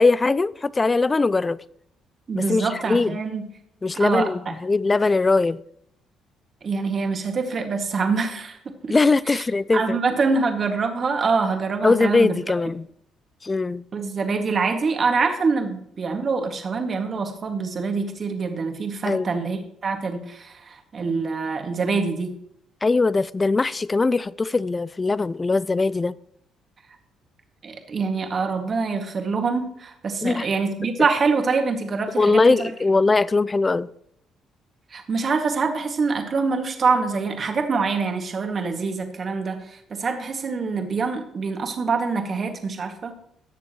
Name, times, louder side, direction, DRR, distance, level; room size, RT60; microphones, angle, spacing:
voice 1, 0.0-1.6 2.3-3.2 3.8-5.6 8.9-10.0 11.8-12.9 13.4-13.8 19.0-19.4 22.8-26.1 30.2-30.5 32.2-33.9, left 3 dB, 30° left, 0.4 m, -21 dB
voice 2, 2.3-3.5 4.0-4.3 6.6-8.9 9.3-9.4 9.7-12.3 13.9-22.3 27.6-32.7 34.9-43.1, right 4 dB, 45° right, 2.0 m, -25 dB
18.0 x 7.0 x 3.1 m
hypercardioid pair, 55°, 0 cm